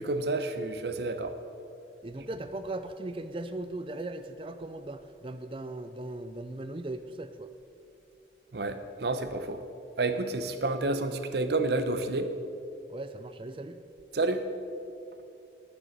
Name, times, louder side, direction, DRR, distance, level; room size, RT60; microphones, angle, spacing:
voice 1, 0.0-1.4 8.5-9.6 10.0-12.4 14.1-14.5, right 2 dB, 70° right, 9 dB, 0.8 m, -30 dB
voice 2, 2.0-7.5 12.9-13.8, right 2 dB, 30° right, 10 dB, 0.4 m, -38 dB
12.0 x 7.1 x 6.6 m, 2.7 s
head